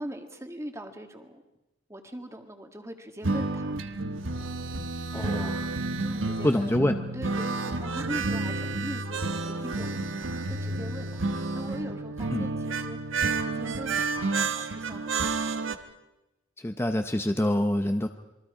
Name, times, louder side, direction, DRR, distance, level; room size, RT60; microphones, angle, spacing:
voice 1, 0.0-1.4 1.9-3.8 5.1-6.7 7.1-11.3 11.5-13.1 13.4-15.8, right 1 dB, 15° right, 5 dB, 1.8 m, -41 dB
sound 1, 3.2-15.7, right 3 dB, 80° right, 1.2 m, -30 dB
voice 2, 5.1-5.6 6.4-7.0 12.3-12.5 16.6-18.1, left 1 dB, 15° left, 7 dB, 0.7 m, -26 dB
27.5 x 22.5 x 5.0 m, 1.0 s
head